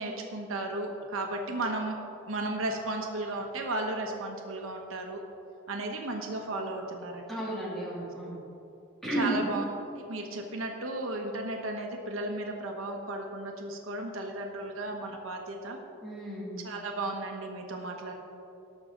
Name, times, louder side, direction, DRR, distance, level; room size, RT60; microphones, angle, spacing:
voice 1, 0.0-2.0 2.3-5.2 5.7-7.4 9.1-9.6 9.9-15.8 16.6-18.1, right 2 dB, 80° right, 2 dB, 1.2 m, -34 dB
voice 2, 7.3-8.4 9.0-9.4 16.0-16.6, right 1 dB, ahead, -6 dB, 2.6 m, -33 dB
18.5 x 6.5 x 3.9 m, 2.8 s
head